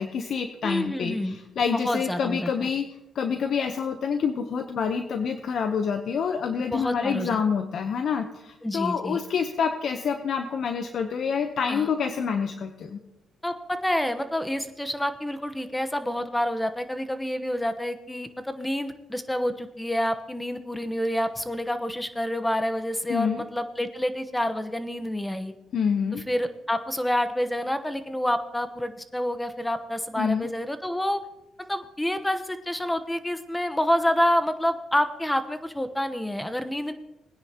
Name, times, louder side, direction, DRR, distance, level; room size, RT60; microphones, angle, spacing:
voice 1, 0.0-2.8 3.1-13.0 23.1-23.4 25.7-26.2 30.2-30.5, left 6 dB, 60° left, 7 dB, 0.8 m, -27 dB
voice 2, 0.6-1.4 1.8-2.7 6.7-7.4 8.6-9.2 11.7-11.9 13.4-25.5 26.1-31.2 31.7-36.9, left 1 dB, 10° left, 10 dB, 1.0 m, -28 dB
20.5 x 9.8 x 2.9 m, 0.90 s
cardioid pair, 90°, 0 cm